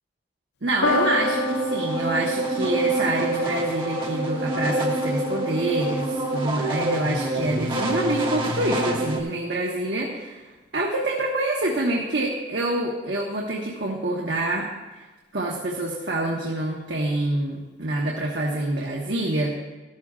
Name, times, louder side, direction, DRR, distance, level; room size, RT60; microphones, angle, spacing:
voice 1, 0.6-10.4 10.7-14.7 14.9-15.0 15.3-19.6, right 1 dB, 85° right, -2 dB, 1.2 m, -26 dB
Piano, 0.8-7.4 8.2-8.3, left 3 dB, 80° left, 0.5 m, -33 dB
sound 1, 0.8-9.2, right 1 dB, 30° right, 1.1 m, -26 dB
14.0 x 12.5 x 2.4 m, 1.2 s
head